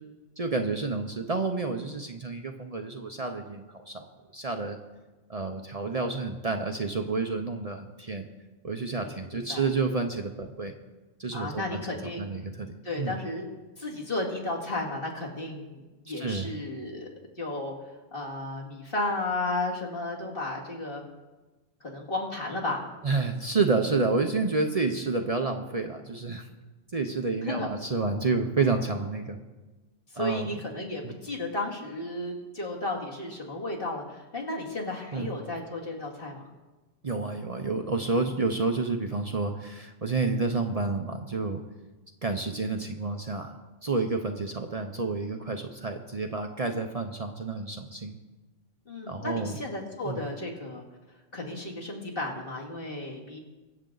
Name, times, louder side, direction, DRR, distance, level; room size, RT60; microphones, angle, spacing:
voice 1, 0.4-4.1 4.3-4.8 5.3-8.3 8.6-10.7 11.2-11.8 12.2-13.1 16.2-16.6 23.0-26.5 26.9-29.4 30.2-30.5 35.1-35.3 37.0-41.6 42.2-48.2 49.1-49.6 50.0-50.2, right 3 dB, 40° right, 4 dB, 0.8 m, -29 dB
voice 2, 8.9-9.7 11.3-12.3 12.8-13.4 13.8-17.1 17.4-21.0 21.8-22.9 27.4-27.7 30.1-36.5 48.9-50.8 51.3-53.4, left 2 dB, 60° left, -3 dB, 2.5 m, -34 dB
23.5 x 7.8 x 3.9 m, 1.2 s
omnidirectional pair, 1.1 m